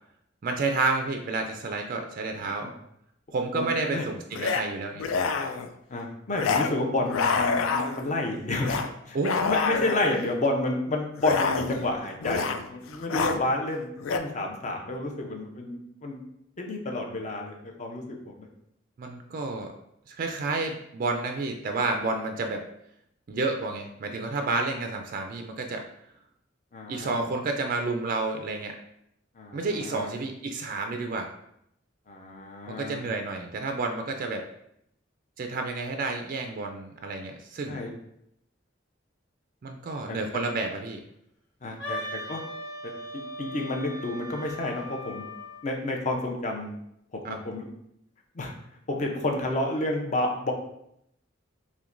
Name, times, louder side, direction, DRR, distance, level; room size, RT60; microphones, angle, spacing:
voice 1, 0.4-2.7 3.3-5.0 9.1-9.3 19.0-19.7 20.1-22.6 23.3-25.8 26.9-28.8 29.5-31.3 32.8-34.4 35.4-37.8 39.6-41.0 47.2-47.4, right 3 dB, 45° right, 4 dB, 0.3 m, -30 dB
sound 1, 2.4-2.5 4.3-4.6 5.0-5.7 6.3-6.7 7.0-8.1 8.6-8.9 9.2-10.2 11.2-11.9 12.2-12.6 12.9-13.4 14.0-14.2, left 4 dB, 90° left, 0.3 m, -27 dB
voice 2, 3.5-4.1 5.9-16.2 16.6-18.5 26.7-27.2 29.3-30.1 32.1-33.0 37.7-37.9 40.1-40.2 41.6-42.4 43.4-45.2 45.6-46.8 47.1-47.6 48.3-50.5, left 2 dB, 35° left, 1 dB, 0.6 m, -30 dB
Wind instrument woodwind instrument, 41.8-45.6, equal, 65° left, 0.8 m, -38 dB
5.7 x 2.2 x 2.5 m, 0.76 s
head